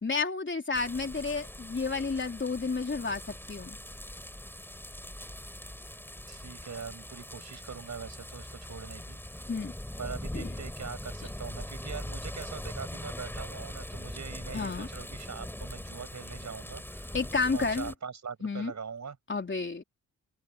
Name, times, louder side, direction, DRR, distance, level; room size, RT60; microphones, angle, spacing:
voice 1, 0.0-3.8 9.5-9.7 10.3-10.5 14.5-14.9 17.1-17.9 18.4-18.7 19.3-19.8, left 4 dB, 35° left, 3.7 m, -31 dB
sound 1, 0.7-17.9, left 1 dB, 5° left, 5.2 m, -41 dB
voice 2, 6.3-9.4 10.0-17.2 17.5-19.2, right 6 dB, 55° right, 6.9 m, -42 dB
open air
cardioid pair, 60°, 34 cm